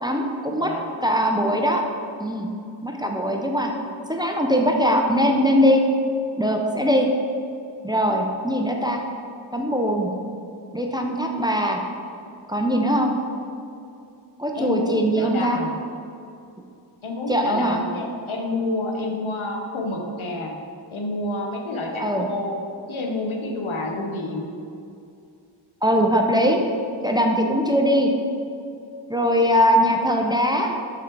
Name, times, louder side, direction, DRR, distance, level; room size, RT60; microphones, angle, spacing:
voice 1, 0.0-0.7 1.0-1.8 2.2-2.5 2.8-3.7 4.1-5.8 6.4-7.1 7.8-9.0 9.5-10.1 10.7-11.8 12.5-13.1 14.4-15.6 17.3-17.8 22.0-22.3 25.8-26.6 27.0-28.1 29.1-30.7, equal, 10° right, 2 dB, 0.6 m, -21 dB
voice 2, 0.5-0.9 14.5-15.7 17.0-20.5 20.9-24.5, left 2 dB, 85° left, 1 dB, 0.9 m, -29 dB
5.9 x 4.0 x 4.5 m, 2.5 s
wide cardioid pair, 50°, 47 cm